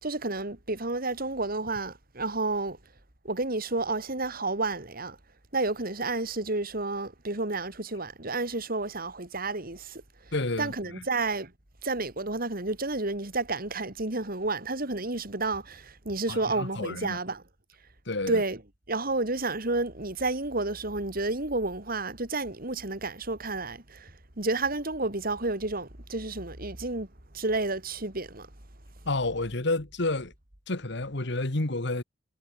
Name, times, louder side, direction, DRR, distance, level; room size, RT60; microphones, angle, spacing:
voice 1, 0.0-2.8 3.2-5.2 5.5-11.5 11.8-17.4 18.3-18.6 18.9-27.1 27.3-28.5, right 2 dB, 50° right, 4.0 m, -31 dB
voice 2, 10.3-10.7 16.3-17.2 18.1-18.4 29.1-30.3 30.7-32.0, left 2 dB, 65° left, 1.9 m, -30 dB
head